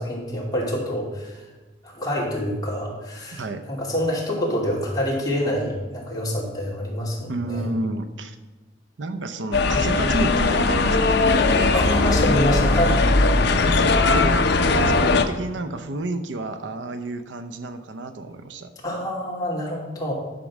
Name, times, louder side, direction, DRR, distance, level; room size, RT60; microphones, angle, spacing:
voice 1, 0.0-1.4 1.8-3.4 3.7-7.6 11.7-13.0 18.8-20.1, equal, 20° left, -4 dB, 2.5 m, -26 dB
voice 2, 7.2-8.4 9.0-11.2 13.6-18.7, right 2 dB, 80° right, 8 dB, 0.7 m, -30 dB
sound 1, 9.5-15.2, left 3 dB, 65° left, 0.7 m, -19 dB
10.5 x 5.2 x 6.1 m, 1.2 s
head